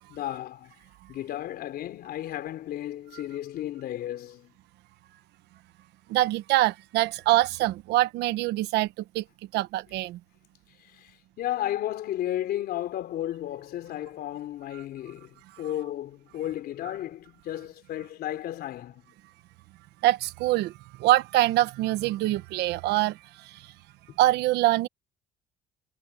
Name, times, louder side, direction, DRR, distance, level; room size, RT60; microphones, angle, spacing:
voice 1, 0.1-0.7 1.1-4.5 10.8-19.0 24.1-24.2, left 13 dB, 70° left, 3.5 m, -34 dB
voice 2, 6.1-9.2 9.5-10.2 20.0-20.7 21.0-23.7 24.2-24.9, right 16 dB, 85° right, 1.1 m, -24 dB
cardioid pair, 110°, 17 cm